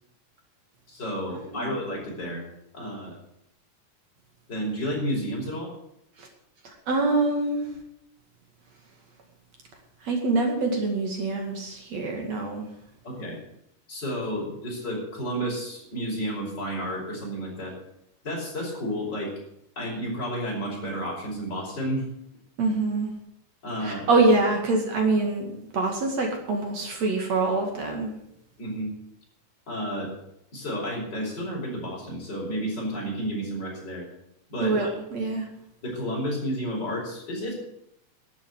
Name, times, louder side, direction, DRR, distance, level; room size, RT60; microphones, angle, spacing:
voice 1, 0.9-2.4 2.7-3.2 4.5-5.7 13.0-13.4 13.9-17.8 18.2-19.3 19.8-22.0 23.6-24.1 28.6-28.9 29.7-30.1 30.5-34.1 34.5-34.9 35.8-37.5, equal, 30° left, -2 dB, 6.0 m, -31 dB
voice 2, 6.9-7.7 10.0-12.7 22.6-23.1 23.8-28.1 34.6-35.5, right 3 dB, 55° right, 2 dB, 3.2 m, -25 dB
12.5 x 8.1 x 9.3 m, 0.78 s
omnidirectional pair, 3.7 m